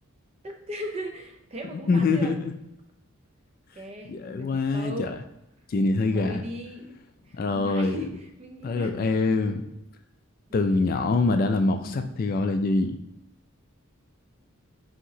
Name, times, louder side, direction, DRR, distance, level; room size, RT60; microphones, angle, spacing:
voice 1, 0.4-2.3 3.8-5.1 6.1-7.0 7.3-8.9 10.5-11.0, equal, 30° right, 3 dB, 0.5 m, -38 dB
voice 2, 1.9-2.5 4.1-5.2 5.7-6.4 7.4-8.0 8.6-9.6 10.5-13.0, left 3 dB, 45° left, 7 dB, 0.3 m, -24 dB
5.7 x 2.9 x 2.7 m, 0.85 s
head